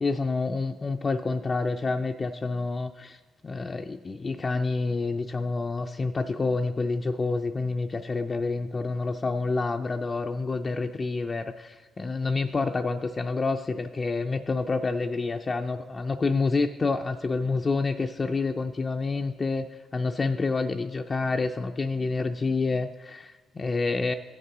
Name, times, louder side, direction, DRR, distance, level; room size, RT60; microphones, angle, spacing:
voice 1, 0.0-24.1, left 3 dB, 30° left, 4 dB, 0.4 m, -28 dB
15.5 x 5.4 x 3.7 m, 1.3 s
cardioid pair, 90°, 0 cm